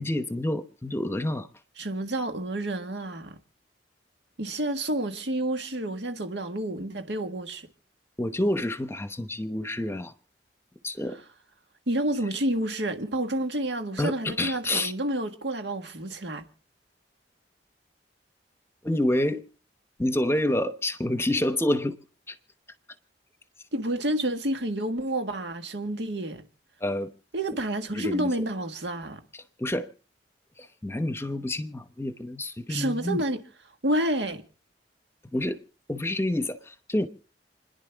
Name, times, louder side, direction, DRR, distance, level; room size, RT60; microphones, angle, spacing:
voice 1, 0.0-1.5 8.2-10.1 10.8-11.2 14.0-14.9 18.8-19.4 20.0-22.0 22.3-22.4 26.8-27.1 27.9-28.3 29.6-29.9 30.8-33.2 35.3-35.6 35.9-37.1, left 1 dB, 15° left, 0.9 m, -28 dB
voice 2, 1.8-3.4 4.4-7.7 11.9-16.4 23.7-26.4 27.3-29.2 32.7-33.4 33.8-34.4, right 1 dB, 80° right, 1.7 m, -29 dB
29.5 x 10.5 x 3.5 m
head